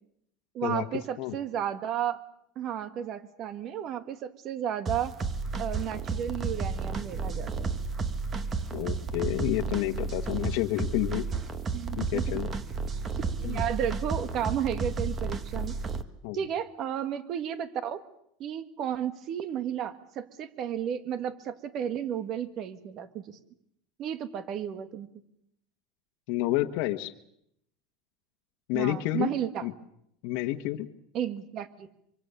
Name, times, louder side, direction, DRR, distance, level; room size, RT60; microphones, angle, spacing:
voice 1, 0.5-2.2 2.6-5.2 5.6-7.7 11.7-12.4 12.9-13.0 13.4-15.8 16.3-18.0 18.4-23.4 24.0-25.1 28.7-29.7 31.1-31.9, right 9 dB, 40° right, 11 dB, 1.7 m, -33 dB
sound 1, 4.9-16.0, right 4 dB, 25° right, 1.5 m, -32 dB
voice 2, 8.7-11.2 12.0-12.5 13.4-13.6 16.2-16.4 26.3-27.1 28.7-29.3 29.6-29.7 30.2-30.9, left 16 dB, 60° left, 4 dB, 1.4 m, -29 dB
25.5 x 24.5 x 6.9 m, 0.74 s
supercardioid pair, 145°, 0 cm